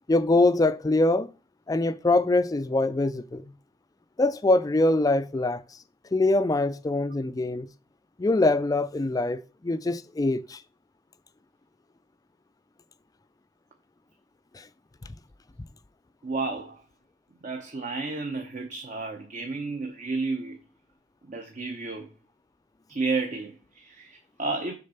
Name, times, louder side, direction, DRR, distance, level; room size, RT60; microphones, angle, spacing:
voice 1, 0.1-1.3 1.7-3.5 4.2-5.6 6.1-7.7 8.2-10.6 14.5-14.7, left 2 dB, 20° left, 0.4 m, -23 dB
voice 2, 16.2-16.8 17.4-20.6 21.3-22.1 22.9-24.7, right 3 dB, 45° right, 0.8 m, -32 dB
6.6 x 3.8 x 5.6 m
head